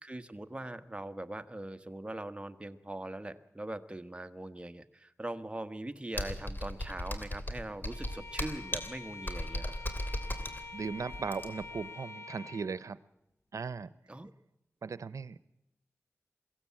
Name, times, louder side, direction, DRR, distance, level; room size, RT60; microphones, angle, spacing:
voice 1, 0.0-9.7 14.1-14.3, right 1 dB, 20° right, 8 dB, 1.4 m, -41 dB
Computer keyboard, 6.1-11.8, left 1 dB, 40° left, 2.9 m, -37 dB
Bowed string instrument, 7.9-12.8, left 3 dB, 60° left, 1.6 m, -46 dB
voice 2, 10.7-13.0 13.5-13.9 14.8-15.4, right 5 dB, 90° right, 17 dB, 0.7 m, -37 dB
22.5 x 16.0 x 8.6 m, 0.86 s
wide cardioid pair, 55°, 5 cm